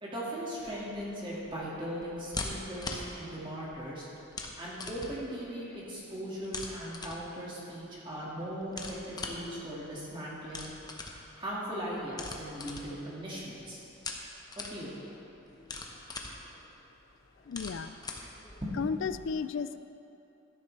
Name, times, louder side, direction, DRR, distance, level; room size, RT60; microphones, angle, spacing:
voice 1, 0.0-4.1 4.6-10.7 11.3-13.8 14.6-15.1 18.6-18.7, equal, 25° right, -7 dB, 1.9 m, -39 dB
sound 1, 0.6-19.2, left 3 dB, 20° left, 0.8 m, -44 dB
voice 2, 17.5-17.9 18.8-19.8, left 5 dB, 65° left, 12 dB, 0.4 m, -33 dB
13.0 x 10.5 x 3.3 m, 2.9 s
head